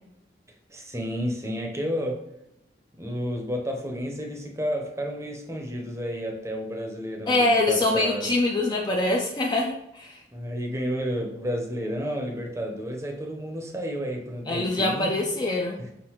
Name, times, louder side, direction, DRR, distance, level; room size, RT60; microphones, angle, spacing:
voice 1, 0.7-2.3 3.0-8.3 10.3-15.2 15.8-15.9, equal, 15° right, 2 dB, 0.7 m, -31 dB
voice 2, 7.3-10.2 14.5-15.8, left 2 dB, 25° left, 0 dB, 0.4 m, -24 dB
5.6 x 2.5 x 2.9 m, 0.83 s
head